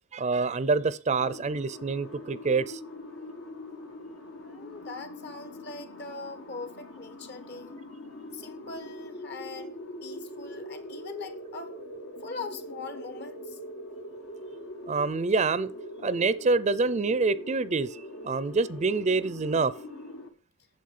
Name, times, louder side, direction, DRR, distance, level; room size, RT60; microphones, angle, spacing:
voice 1, 0.1-2.8 14.9-15.7 16.0-19.7, right 4 dB, 35° right, 0.5 m, -26 dB
sound 1, 1.2-20.3, equal, 80° left, 1.6 m, -42 dB
voice 2, 4.4-7.8 8.3-9.7 10.0-11.8 12.2-13.6, left 4 dB, 55° left, 1.3 m, -41 dB
9.4 x 7.0 x 5.0 m
head